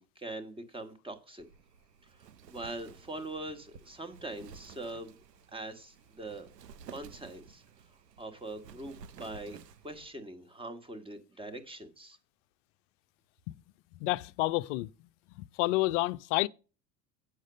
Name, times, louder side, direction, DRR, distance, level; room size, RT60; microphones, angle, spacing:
voice 1, 0.0-1.4 2.1-5.2 5.5-6.5 6.9-7.6 8.2-9.6 9.8-12.2, right 2 dB, 10° right, 1.5 m, -42 dB
Wind, 1.4-10.1, right 7 dB, 75° right, 0.9 m, -53 dB
voice 2, 14.0-14.9 15.4-16.5, left 19 dB, 50° left, 0.6 m, -29 dB
8.4 x 6.3 x 5.2 m
figure-of-eight pair, 75°, 49 cm